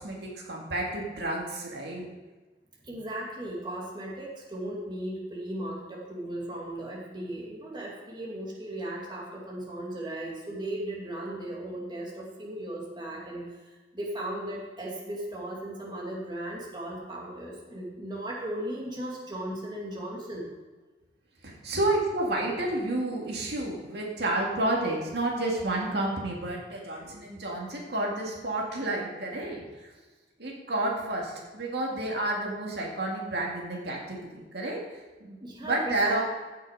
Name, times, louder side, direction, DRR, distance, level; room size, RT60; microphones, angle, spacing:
voice 1, 0.0-2.1 21.4-29.9 30.4-34.8 35.2-36.2, right 2 dB, 65° right, -2 dB, 2.3 m, -30 dB
voice 2, 2.8-20.5 35.4-36.2, right 1 dB, 25° right, -3 dB, 2.4 m, -37 dB
15.5 x 6.5 x 4.9 m, 1.2 s
head